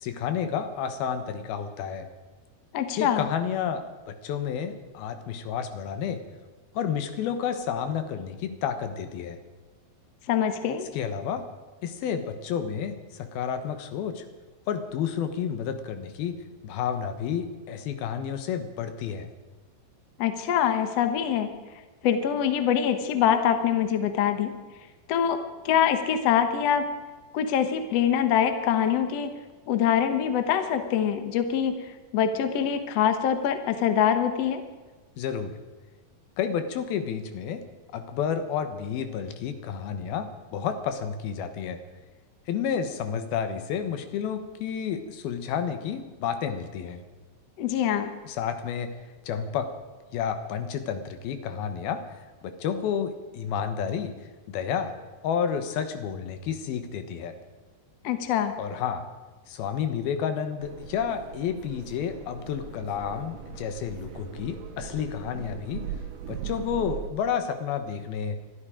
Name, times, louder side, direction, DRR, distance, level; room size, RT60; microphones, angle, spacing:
voice 1, 0.0-2.1 2.9-6.2 6.7-9.4 10.9-11.4 11.8-14.2 14.7-16.3 16.6-19.3 35.2-35.5 36.4-37.6 37.9-41.8 42.5-47.0 48.3-48.9 49.3-49.7 50.1-52.0 52.4-54.1 54.5-54.9 55.2-57.3 58.6-59.1 59.5-65.8 66.3-68.4, left 7 dB, 70° left, 9 dB, 2.8 m, -30 dB
voice 2, 2.7-3.3 10.3-10.9 20.2-21.5 22.0-24.5 25.1-25.4 25.6-26.8 27.3-29.3 29.7-31.7 32.1-34.6 47.6-48.1 58.0-58.5, left 9 dB, 90° left, 8 dB, 1.4 m, -24 dB
sound 1, 60.6-67.1, right 8 dB, 75° right, 3.0 m, -40 dB
23.0 x 12.5 x 5.0 m, 1.3 s
omnidirectional pair, 4.8 m